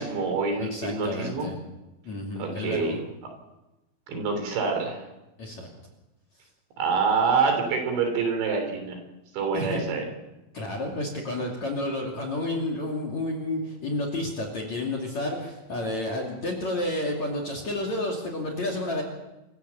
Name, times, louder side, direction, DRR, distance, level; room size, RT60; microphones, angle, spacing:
voice 1, 0.0-1.5 2.4-3.0 4.1-5.0 6.8-9.0 9.3-10.1, right 5 dB, 60° right, 4 dB, 5.5 m, -26 dB
voice 2, 0.5-1.6 2.0-3.0 5.4-5.7 9.5-9.8 10.5-19.0, left 1 dB, 40° left, 2 dB, 3.2 m, -30 dB
26.5 x 15.5 x 7.2 m, 0.98 s
omnidirectional pair, 6.0 m